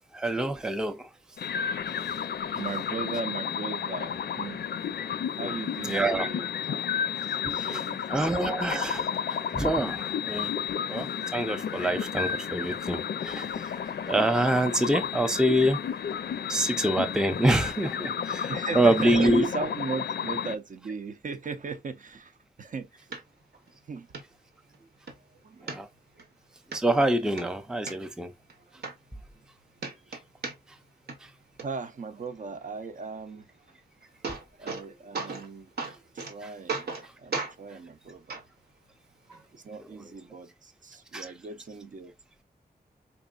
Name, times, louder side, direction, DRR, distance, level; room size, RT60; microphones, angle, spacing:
voice 1, 0.1-1.1 5.8-6.3 7.4-7.8 8.1-10.5 10.9-13.7 14.1-15.8 16.5-19.5 25.6-25.9 26.7-28.3 31.2-31.3 41.1-41.3, right 1 dB, 5° right, 0.4 m, -26 dB
sound 1, 1.4-20.5, left 7 dB, 80° left, 0.4 m, -32 dB
voice 2, 2.1-4.7 5.4-6.8 7.4-8.7 18.5-23.1 23.9-24.1 25.3-25.8 26.2-26.3 28.7-28.8 31.6-33.5 34.6-35.7 36.1-36.9 37.2-38.4 39.3-42.1, right 4 dB, 50° right, 0.6 m, -37 dB
sound 2, 23.1-23.2 23.7-23.8 24.1-24.2 24.7-25.2 25.7-26.3 26.7-26.8 27.2-27.9 28.5-28.6 28.8-29.5 29.8-30.8 31.1-31.6 33.7-33.8 34.0-34.9 35.1-35.5 35.8-36.3 36.7-37.1 37.3-37.5 38.3-38.4 39.3-39.4, right 4 dB, 75° right, 1.0 m, -35 dB
4.4 x 3.0 x 2.3 m
wide cardioid pair, 140°, 17 cm